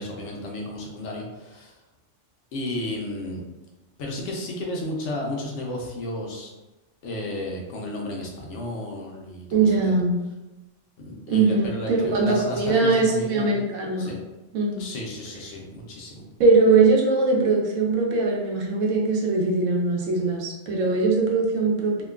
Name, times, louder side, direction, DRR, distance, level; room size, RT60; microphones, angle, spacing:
voice 1, 0.0-1.7 2.5-3.4 4.0-6.5 7.0-10.0 11.0-13.6 14.0-14.2 14.8-16.2, left 1 dB, 70° left, -1 dB, 0.9 m, -33 dB
voice 2, 9.5-10.2 11.3-14.1 14.5-14.9 16.4-22.0, right 3 dB, 85° right, -1 dB, 1.0 m, -21 dB
2.9 x 2.2 x 2.3 m, 1.1 s
omnidirectional pair, 1.3 m